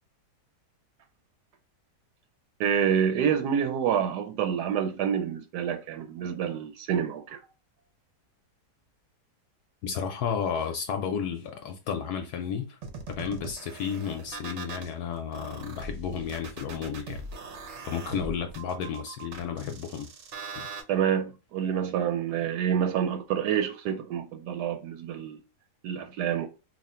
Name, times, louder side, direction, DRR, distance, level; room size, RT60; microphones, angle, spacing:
voice 1, 2.6-7.4 20.9-25.4 25.8-26.5, right 8 dB, 80° right, 1.1 m, -27 dB
voice 2, 9.8-12.8 13.1-17.2 17.9-20.1 20.6-20.7, left 7 dB, 75° left, 1.1 m, -32 dB
sound 1, 12.8-14.9 15.3-20.8, right 3 dB, 55° right, 0.8 m, -41 dB
3.0 x 2.4 x 4.2 m
omnidirectional pair, 1.8 m